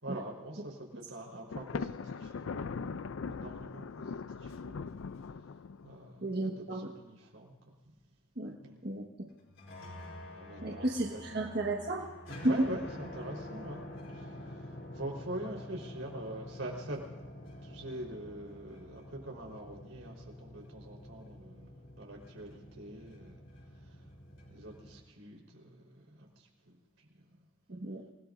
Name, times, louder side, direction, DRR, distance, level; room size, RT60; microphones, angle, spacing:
voice 1, 0.0-5.0 5.8-7.7 8.6-8.8 10.3-11.2 12.4-13.8 14.1-17.0 17.6-23.4 23.7-24.1 24.5-27.4, right 1 dB, 85° right, 0 dB, 4.2 m, -44 dB
Thunder, 1.5-6.1, left 5 dB, 85° left, 0.5 m, -40 dB
voice 2, 6.2-6.9 8.4-8.5 8.8-9.1 10.6-12.1 12.4-12.5 27.7-28.0, right 1 dB, 55° right, -1 dB, 1.5 m, -33 dB
sound 1, 9.4-25.0, left 1 dB, 65° left, 4.1 m, -48 dB
27.5 x 18.0 x 2.6 m, 1.1 s
head